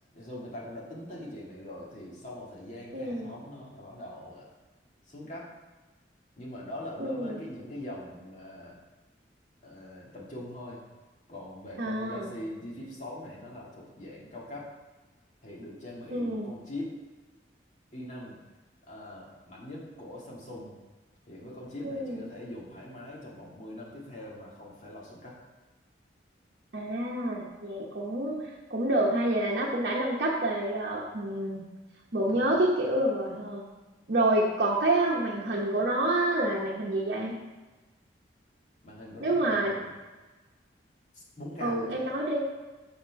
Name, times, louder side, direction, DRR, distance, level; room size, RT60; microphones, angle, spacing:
voice 1, 0.1-4.5 5.0-5.5 6.4-8.8 9.6-10.8 11.3-14.7 15.4-17.0 17.9-18.4 18.9-20.8 21.3-25.4 32.3-32.5 38.8-39.9 41.1-42.1, left 1 dB, 40° left, -4 dB, 1.9 m, -42 dB
voice 2, 2.9-3.3 7.0-7.4 11.8-12.3 16.1-16.5 21.8-22.2 26.7-28.4 28.7-31.6 32.1-33.6 34.1-37.3 39.2-39.8 41.6-42.4, right 1 dB, 60° right, -4 dB, 0.9 m, -28 dB
6.5 x 4.3 x 5.8 m, 1.2 s
head